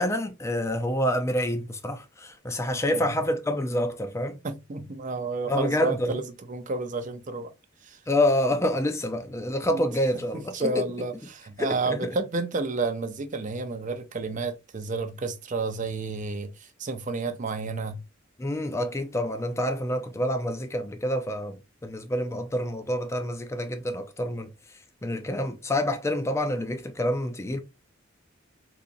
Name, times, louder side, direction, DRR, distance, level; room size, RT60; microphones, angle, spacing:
voice 1, 0.0-4.4 5.5-6.2 8.1-10.8 11.6-12.1 18.4-27.6, left 1 dB, 15° left, 0.4 m, -27 dB
voice 2, 4.4-6.2 6.5-7.5 7.8-8.0 9.7-9.8 10.5-16.5 16.8-18.0, right 3 dB, 40° right, 0.5 m, -31 dB
3.9 x 2.9 x 2.5 m
head